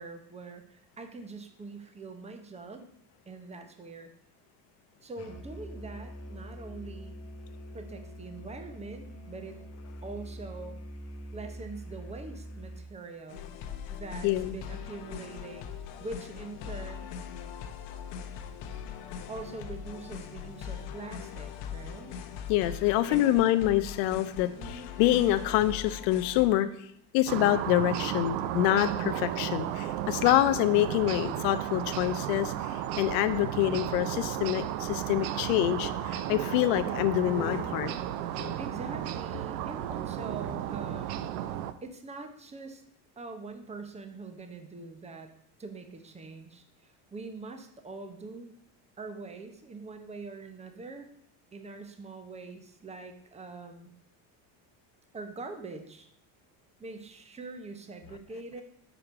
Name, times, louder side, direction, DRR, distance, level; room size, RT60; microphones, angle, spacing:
voice 1, 0.0-2.9 3.3-4.1 5.0-7.1 7.7-9.6 10.0-10.8 11.3-13.5 13.9-15.7 16.0-17.1 19.3-22.2 23.1-23.4 24.6-24.9 38.6-41.4 41.8-42.8 43.2-45.3 45.6-48.5 49.0-51.1 51.5-53.9 55.1-56.1 56.8-58.6, right 3 dB, 15° right, 6 dB, 0.8 m, -43 dB
Musical instrument, 5.2-13.0, equal, 30° left, 1.0 m, -44 dB
sound 1, 13.3-26.5, left 8 dB, 60° left, 0.9 m, -41 dB
voice 2, 14.2-14.6 22.5-26.7 27.1-32.5 33.0-38.0 38.3-38.6, left 14 dB, 85° left, 12 dB, 0.7 m, -26 dB
sound 2, 27.3-41.7, right 11 dB, 85° right, 0.6 m, -34 dB
5.2 x 4.9 x 5.9 m, 0.69 s
supercardioid pair, 110°, 49 cm